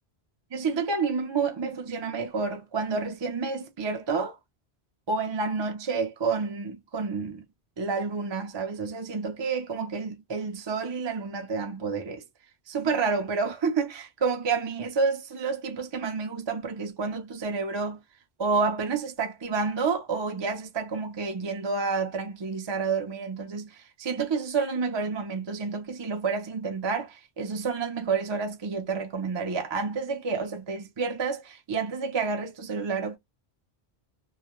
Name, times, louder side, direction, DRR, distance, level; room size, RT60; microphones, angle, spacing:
voice 1, 0.5-4.4 5.1-7.4 7.8-12.2 12.7-18.0 18.4-33.2, right 4 dB, 35° right, 0.4 m, -29 dB
2.3 x 2.1 x 2.9 m
omnidirectional pair, 1.1 m